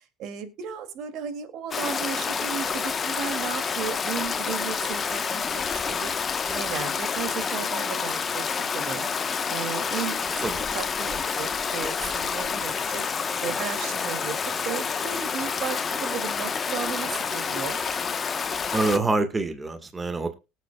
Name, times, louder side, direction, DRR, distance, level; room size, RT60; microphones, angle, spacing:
voice 1, 0.0-6.1 6.5-8.5 8.7-14.3 14.6-17.8, right 8 dB, 60° right, 2.6 m, -35 dB
Stream, 1.7-19.0, left 6 dB, 30° left, 1.1 m, -28 dB
voice 2, 18.7-20.3, right 3 dB, 20° right, 1.7 m, -25 dB
19.0 x 8.2 x 2.3 m
supercardioid pair, 105°, 0 cm